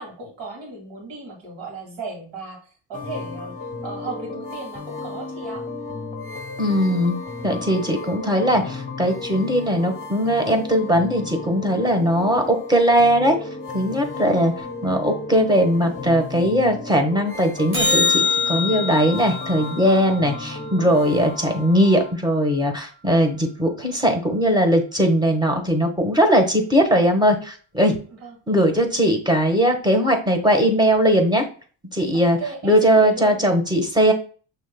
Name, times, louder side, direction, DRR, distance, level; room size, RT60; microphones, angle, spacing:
voice 1, 0.0-3.5 3.8-5.6 28.1-28.4 32.1-33.4, right 3 dB, 75° right, 1 dB, 2.1 m, -36 dB
sound 1, 2.9-22.1, left 3 dB, 20° left, 0.9 m, -34 dB
voice 2, 6.6-13.4 13.7-14.5 14.8-28.0 28.5-31.4 31.9-32.4 32.6-34.1, equal, 10° right, 3 dB, 1.3 m, -19 dB
sound 2, 17.7-22.2 28.8-28.9, left 4 dB, 25° right, 1.5 m, -26 dB
6.3 x 3.4 x 2.2 m, 0.40 s
supercardioid pair, 60°, 44 cm